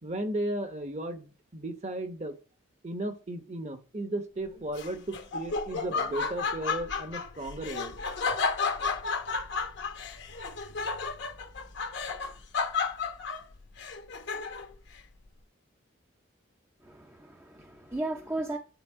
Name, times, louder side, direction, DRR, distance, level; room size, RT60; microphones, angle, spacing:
voice 1, 0.0-2.4 2.8-8.0, right 1 dB, 35° right, 0.9 m, -35 dB
Laughter, 4.7-14.8, left 4 dB, 60° left, 0.9 m, -32 dB
voice 2, 16.8-18.6, right 2 dB, 10° right, 0.6 m, -35 dB
10.5 x 4.1 x 3.6 m
head